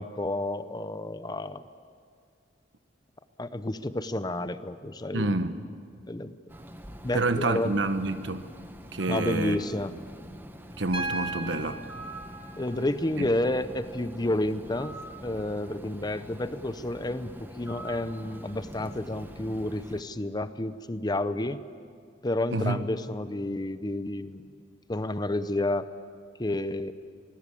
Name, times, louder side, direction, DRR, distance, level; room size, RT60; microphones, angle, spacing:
voice 1, 0.0-1.6 3.4-5.3 6.1-6.3 7.0-7.8 9.1-9.9 12.6-21.6 22.2-24.6 24.9-25.9 26.4-26.9, left 1 dB, 20° left, 12 dB, 0.7 m, -30 dB
voice 2, 5.1-5.6 7.1-8.4 8.9-9.6 10.8-11.8 13.2-13.3 22.5-22.8, right 2 dB, 75° right, 10 dB, 1.3 m, -28 dB
Bird, 6.5-20.0, right 1 dB, 10° right, 1.2 m, -44 dB
Piano, 10.9-14.9 16.5-16.6, right 3 dB, 30° right, 1.7 m, -39 dB
25.0 x 20.5 x 8.5 m, 2.1 s
head